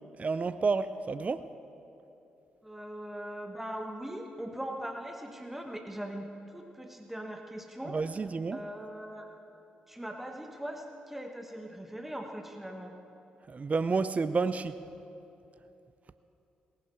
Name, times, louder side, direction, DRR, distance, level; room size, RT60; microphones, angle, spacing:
voice 1, 0.2-1.5 7.9-8.6 13.5-14.7, right 4 dB, 35° right, 13 dB, 0.4 m, -30 dB
voice 2, 2.6-8.1 8.5-9.3 9.9-13.0, equal, 5° right, 3 dB, 1.3 m, -40 dB
18.5 x 11.0 x 4.5 m, 2.9 s
hypercardioid pair, 40°, 4 cm